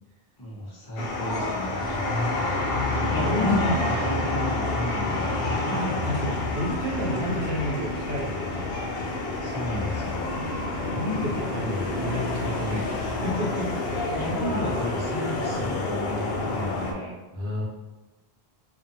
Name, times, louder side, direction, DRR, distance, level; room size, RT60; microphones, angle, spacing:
voice 1, 0.4-2.0 3.1-6.0 9.4-10.4 14.1-17.2, equal, 30° left, -4 dB, 0.6 m, -32 dB
sound 1, 1.0-16.9, left 2 dB, 85° left, 0.8 m, -28 dB
voice 2, 2.9-3.7 5.7-8.7 10.9-13.7 17.3-17.6, left 1 dB, 80° right, -3 dB, 1.0 m, -30 dB
2.5 x 2.5 x 2.6 m, 1.1 s
omnidirectional pair, 1.0 m